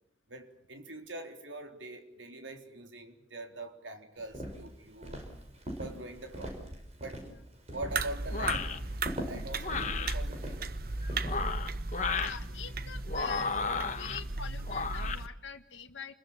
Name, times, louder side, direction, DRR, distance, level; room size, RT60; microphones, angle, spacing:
voice 1, 0.3-5.2 5.8-6.6 7.0-7.3 7.7-8.7 9.2-10.7, right 2 dB, 75° right, 4 dB, 4.0 m, -43 dB
Walk footsteps, 4.2-11.3, equal, 35° right, 5.5 m, -42 dB
sound 1, 7.9-15.3, right 2 dB, 50° right, 1.2 m, -36 dB
sound 2, 8.3-8.8 9.6-10.1 11.1-12.4 13.1-14.2 14.7-15.2, left 5 dB, 40° left, 1.6 m, -33 dB
voice 2, 9.5-9.8 12.1-13.6 13.9-16.1, left 6 dB, 75° left, 4 dB, 1.6 m, -44 dB
29.5 x 22.0 x 7.4 m, 0.72 s
head